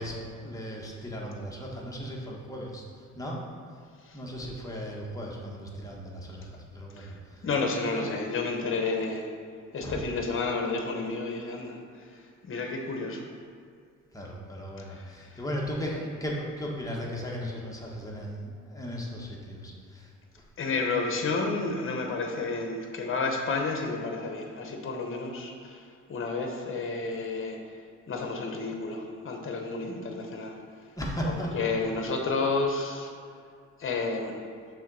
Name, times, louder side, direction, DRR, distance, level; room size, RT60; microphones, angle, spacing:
voice 1, 0.0-2.8 3.1-3.4 4.1-7.4 7.9-8.0 9.8-10.0 14.1-20.1 20.4-20.5 31.0-32.0, equal, 10° left, -3 dB, 1.3 m, -36 dB
voice 2, 7.0-9.3 9.7-13.3 14.8-15.4 20.6-27.6 28.1-30.5 31.2-33.1 33.8-34.4, left 3 dB, 45° left, 2 dB, 1.1 m, -31 dB
6.2 x 3.7 x 5.4 m, 2.2 s
cardioid pair, 90°, 30 cm